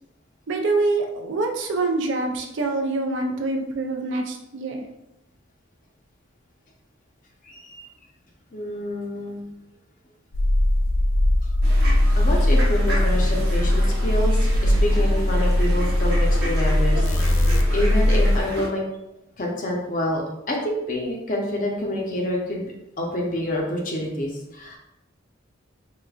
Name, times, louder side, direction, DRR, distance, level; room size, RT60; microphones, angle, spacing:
voice 1, 0.5-4.8, right 3 dB, 70° right, 3 dB, 0.5 m, -25 dB
voice 2, 7.4-7.8 8.5-9.4 11.4-11.5 12.1-17.4 17.7-18.8 19.4-24.8, left 1 dB, 40° left, -1 dB, 0.6 m, -27 dB
sound 1, 10.3-18.4, left 1 dB, 80° left, 0.4 m, -19 dB
sound 2, 11.6-18.7, right 1 dB, 50° right, 0.9 m, -33 dB
4.8 x 2.1 x 2.3 m, 0.87 s
head